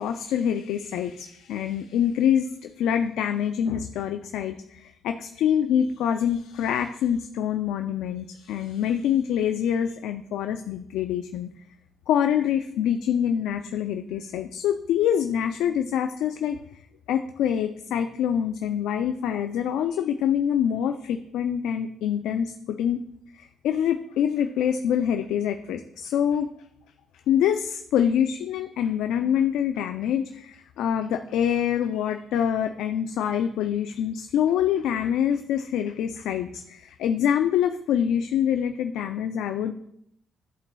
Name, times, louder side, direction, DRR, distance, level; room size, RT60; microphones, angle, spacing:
voice 1, 0.0-11.5 12.1-16.6 17.1-23.0 23.4-26.5 27.3-39.7, left 9 dB, 85° left, 6 dB, 0.3 m, -25 dB
11.5 x 4.2 x 2.2 m, 0.72 s
cardioid pair, 90°, 0 cm